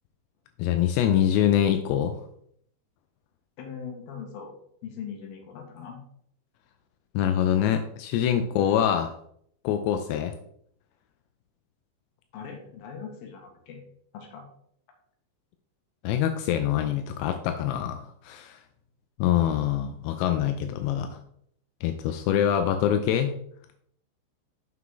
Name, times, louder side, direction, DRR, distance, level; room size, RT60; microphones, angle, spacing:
voice 1, 0.6-2.2 7.2-9.1 9.6-10.3 16.0-18.6 19.2-21.2 21.8-23.4, left 10 dB, 85° left, 7 dB, 2.5 m, -25 dB
voice 2, 3.6-4.5 4.8-6.0 12.3-13.8 14.1-14.4, left 7 dB, 65° left, 1 dB, 2.6 m, -40 dB
7.4 x 5.8 x 3.7 m, 0.67 s
omnidirectional pair, 5.5 m